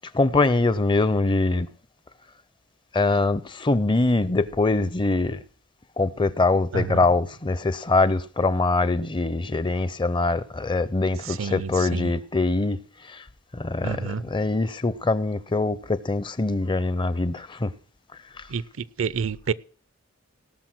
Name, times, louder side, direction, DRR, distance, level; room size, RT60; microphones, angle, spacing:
voice 1, 0.1-1.7 2.9-5.4 6.0-12.8 13.1-13.2 13.5-17.7 18.4-18.5, left 3 dB, 25° left, 0.5 m, -23 dB
voice 2, 6.7-7.0 11.3-12.1 13.8-14.2 18.5-19.5, right 6 dB, 70° right, 0.5 m, -29 dB
18.0 x 6.4 x 6.0 m
head